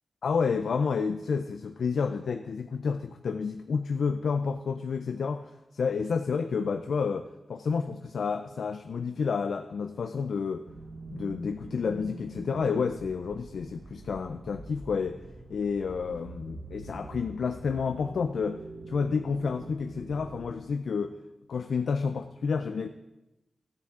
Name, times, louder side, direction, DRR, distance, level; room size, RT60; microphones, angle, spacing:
voice 1, 0.2-10.6 11.1-15.2 15.5-18.6 18.9-21.2 21.5-22.9, left 5 dB, 85° left, 8 dB, 0.4 m, -30 dB
sound 1, 10.6-20.5, right 2 dB, 70° right, 1.4 m, -45 dB
14.0 x 9.6 x 3.7 m, 0.98 s
wide cardioid pair, 170°, 0 cm